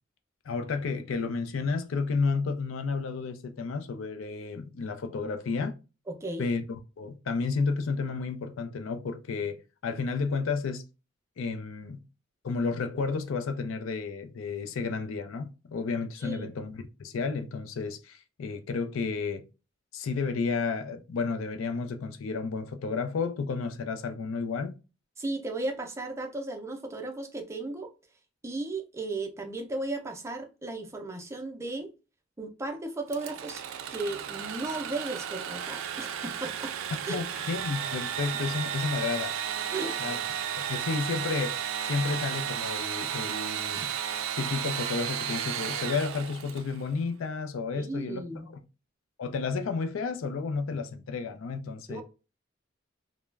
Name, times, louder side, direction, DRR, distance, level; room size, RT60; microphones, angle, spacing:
voice 1, 0.5-5.7 6.4-10.8 11.4-12.0 12.4-19.4 19.9-24.8 37.1-39.4 40.0-40.2 40.7-43.9 44.4-48.2 49.2-52.0, left 4 dB, 85° left, 0.4 m, -32 dB
voice 2, 6.1-6.5 16.2-16.5 25.2-27.9 28.4-31.9 32.4-33.6 33.9-36.8 37.0-37.2 39.7-39.9 47.8-48.5 51.9-52.0, right 2 dB, 15° right, 0.4 m, -35 dB
Engine / Sawing, 33.1-46.8, right 9 dB, 90° right, 0.3 m, -33 dB
2.3 x 2.0 x 3.1 m
head